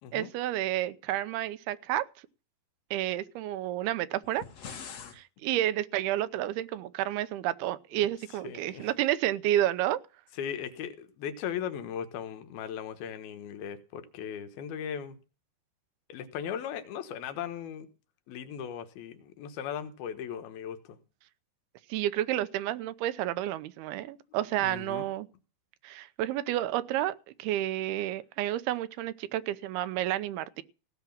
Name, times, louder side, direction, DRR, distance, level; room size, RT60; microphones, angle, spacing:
voice 1, 0.1-2.1 2.9-4.5 5.1-10.0 21.9-25.3 25.8-30.6, right 13 dB, 85° right, 2.7 m, -30 dB
sound 1, 4.2-5.2, left 6 dB, 50° left, 2.3 m, -43 dB
voice 2, 8.4-8.9 10.3-15.2 16.1-17.9 18.3-21.0 24.6-25.1, left 8 dB, 80° left, 3.0 m, -38 dB
16.5 x 5.9 x 7.2 m
omnidirectional pair, 4.4 m